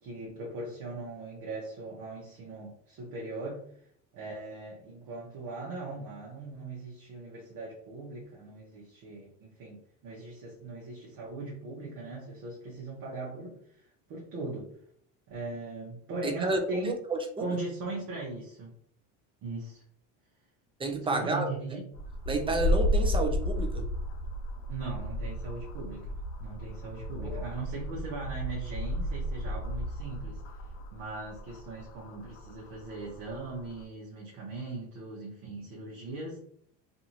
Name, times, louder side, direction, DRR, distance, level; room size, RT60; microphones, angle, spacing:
voice 1, 0.0-3.9 4.1-14.8 15.3-17.0 17.4-18.7 19.4-19.8 21.0-21.9 24.7-26.1 26.4-30.4 30.9-36.4, right 3 dB, 60° right, -3 dB, 1.1 m, -39 dB
voice 2, 16.2-17.2 20.8-21.5 22.3-23.8 27.2-27.5, right 2 dB, 15° right, 4 dB, 0.6 m, -30 dB
sound 1, 21.9-33.8, equal, 90° left, 0.6 m, -33 dB
2.7 x 2.5 x 2.9 m, 0.62 s
supercardioid pair, 95°, 37 cm